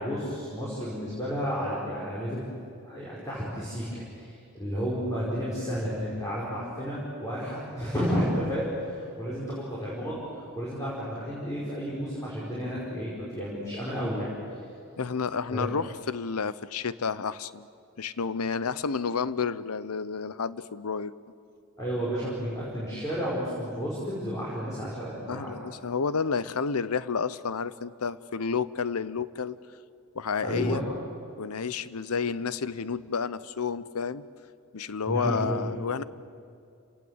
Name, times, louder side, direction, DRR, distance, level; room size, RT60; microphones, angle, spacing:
voice 1, 0.0-2.4 2.8-10.2 10.6-14.3 15.5-15.7 21.8-25.5 30.4-30.8 35.1-35.6, equal, 15° left, -7 dB, 4.9 m, -32 dB
voice 2, 15.0-17.7 18.0-21.1 25.3-29.6 30.1-30.8 31.4-34.3 34.7-36.0, left 5 dB, 90° left, 16 dB, 0.8 m, -30 dB
29.0 x 18.5 x 8.0 m, 2.5 s
head